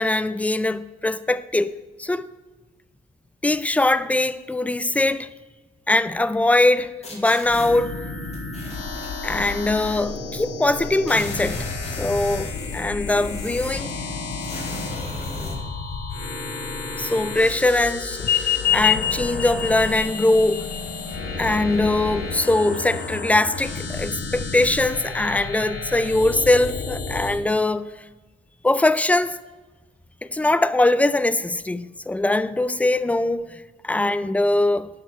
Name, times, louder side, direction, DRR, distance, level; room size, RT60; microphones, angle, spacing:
voice 1, 0.0-2.3 3.4-5.3 5.9-8.0 9.2-11.7 12.0-14.0 17.0-20.7 21.4-27.9 28.6-29.4 30.3-33.6 33.8-34.9, left 2 dB, 5° left, 0.4 m, -21 dB
sound 1, 7.0-7.7 8.3-9.1 10.1-10.2 10.4-10.5 10.8-13.9 14.4-15.6, left 1 dB, 35° left, 2.5 m, -36 dB
sound 2, 7.4-27.4, left 3 dB, 85° left, 2.6 m, -32 dB
sound 3, 18.2-23.2, left 11 dB, 50° left, 0.8 m, -26 dB
11.0 x 6.3 x 4.4 m
cardioid pair, 90°, 20 cm